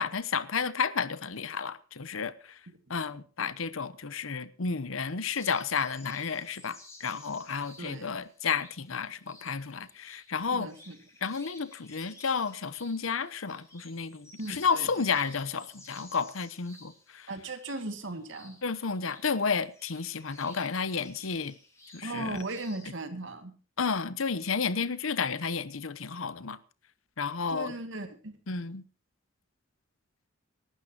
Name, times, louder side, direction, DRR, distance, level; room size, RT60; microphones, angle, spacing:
voice 1, 0.0-2.6 2.9-10.7 11.2-17.3 18.6-21.6 21.9-22.4 23.8-26.6 27.2-27.7 28.5-28.8, left 5 dB, 80° left, 0.9 m, -32 dB
sound 1, 5.3-22.9, left 2 dB, 15° left, 7.1 m, -55 dB
voice 2, 10.5-11.0 14.4-15.1 17.3-18.6 22.0-23.5 27.5-28.4, right 2 dB, 65° right, 2.1 m, -37 dB
27.0 x 12.0 x 2.9 m
head